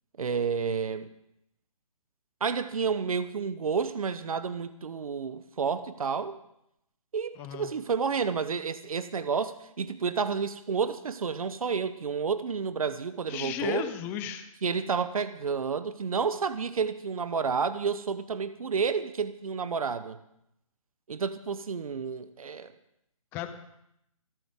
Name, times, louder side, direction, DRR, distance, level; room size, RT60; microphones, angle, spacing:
voice 1, 0.2-1.1 2.4-6.4 7.1-13.9 14.6-20.2 21.1-22.7, right 6 dB, 80° right, 13 dB, 0.9 m, -30 dB
voice 2, 7.4-7.7 13.3-14.5 23.3-23.5, left 10 dB, 10° left, 10 dB, 0.6 m, -34 dB
27.0 x 9.2 x 3.6 m, 0.79 s
hypercardioid pair, 160°, 18 cm